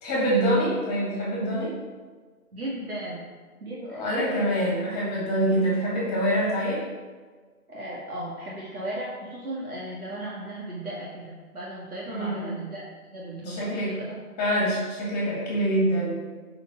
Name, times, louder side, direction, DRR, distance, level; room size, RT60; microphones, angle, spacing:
voice 1, 0.0-1.8 3.8-6.8 12.1-12.5 13.4-14.0 14.4-16.1, right 1 dB, 10° left, -6 dB, 2.0 m, -25 dB
voice 2, 2.5-3.3 3.6-4.5 7.7-12.8 13.1-14.1, right 1 dB, 70° right, -6 dB, 2.5 m, -36 dB
8.0 x 5.3 x 6.1 m, 1.4 s
figure-of-eight pair, 150°, 45 cm